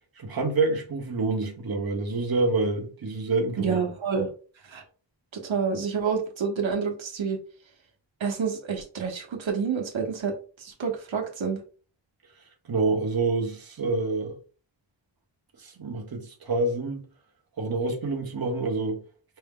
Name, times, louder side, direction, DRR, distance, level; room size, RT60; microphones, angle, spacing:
voice 1, 0.2-3.8 12.7-14.4 15.6-17.1 17.6-19.0, right 3 dB, 50° right, 1.0 m, -27 dB
voice 2, 3.6-4.3 4.6-4.8 5.3-7.4 8.2-11.6, right 6 dB, 85° right, 1.1 m, -28 dB
5.4 x 2.1 x 3.6 m
wide cardioid pair, 120°, 45 cm